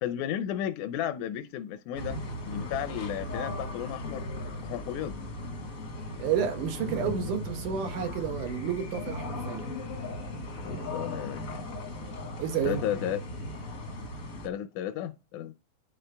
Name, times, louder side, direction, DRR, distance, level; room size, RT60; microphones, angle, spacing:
voice 1, 0.0-2.2 2.4-4.3 4.6-5.2 10.6-11.6 12.6-13.2 14.4-15.5, left 10 dB, 80° left, 2.0 m, -33 dB
sound 1, 1.9-14.5, left 1 dB, 55° left, 0.9 m, -37 dB
voice 2, 6.2-9.7 12.4-12.8, right 8 dB, 90° right, 2.8 m, -30 dB
10.5 x 4.3 x 3.3 m
omnidirectional pair, 3.5 m